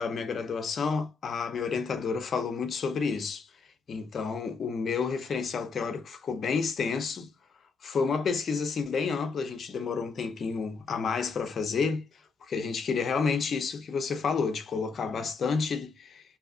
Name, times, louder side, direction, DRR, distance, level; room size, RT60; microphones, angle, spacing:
voice 1, 0.0-3.5 3.9-7.3 7.8-12.0 12.5-16.2, left 5 dB, 50° left, 0.5 m, -30 dB
2.7 x 2.4 x 2.4 m
cardioid pair, 90°, 0 cm